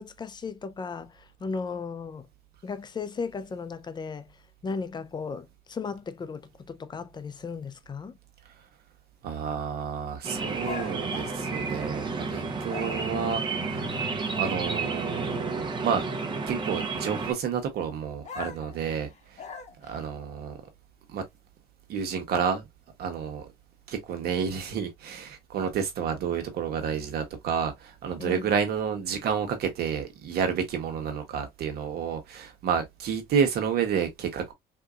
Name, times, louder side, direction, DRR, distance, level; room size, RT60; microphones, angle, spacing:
voice 1, 0.0-2.3 2.6-4.3 4.6-8.2 28.2-28.5, left 5 dB, 25° left, 0.5 m, -36 dB
voice 2, 9.2-14.0 14.4-16.0 16.5-19.4 19.8-20.6 21.1-21.2 21.9-22.7 23.0-23.5 23.9-34.5, right 7 dB, 70° right, 1.1 m, -30 dB
sound 1, 10.2-17.3, right 4 dB, 30° right, 0.9 m, -31 dB
sound 2, 10.6-12.2 12.6-13.3 18.2-20.0, left 6 dB, 40° left, 1.1 m, -41 dB
3.7 x 2.8 x 2.4 m
cardioid pair, 110°, 17 cm